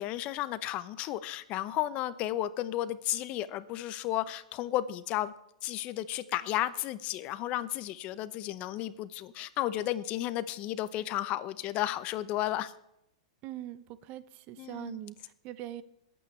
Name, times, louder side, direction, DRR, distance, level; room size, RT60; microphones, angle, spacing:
voice 1, 0.0-5.3 5.6-12.7 14.6-15.0, left 14 dB, 40° left, 15 dB, 0.7 m, -33 dB
voice 2, 13.4-15.8, right 13 dB, 40° right, 15 dB, 0.8 m, -42 dB
21.0 x 8.7 x 3.3 m, 0.80 s
hypercardioid pair, 115°, 3 cm